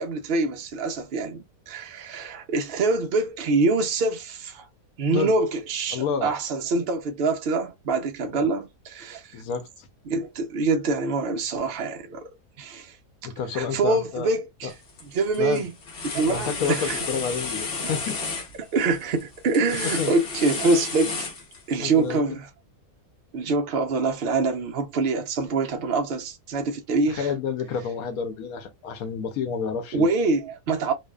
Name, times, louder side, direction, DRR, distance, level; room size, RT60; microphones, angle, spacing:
voice 1, 0.0-4.7 5.0-9.4 10.1-12.3 12.6-12.9 13.5-14.7 15.0-15.7 16.1-17.0 18.7-21.3 21.7-22.5 23.3-27.3 29.9-30.9, right 3 dB, 90° right, 0.5 m, -25 dB
voice 2, 5.9-6.3 8.2-8.5 9.3-9.9 13.2-14.3 14.6-14.7 15.4-15.7 16.3-18.2 20.0-20.1 21.8-22.2 27.1-30.1, left 6 dB, 70° left, 1.0 m, -29 dB
sound 1, 14.7-15.0 15.3-21.9, left 4 dB, 55° left, 0.6 m, -32 dB
2.6 x 2.3 x 2.2 m
omnidirectional pair, 1.7 m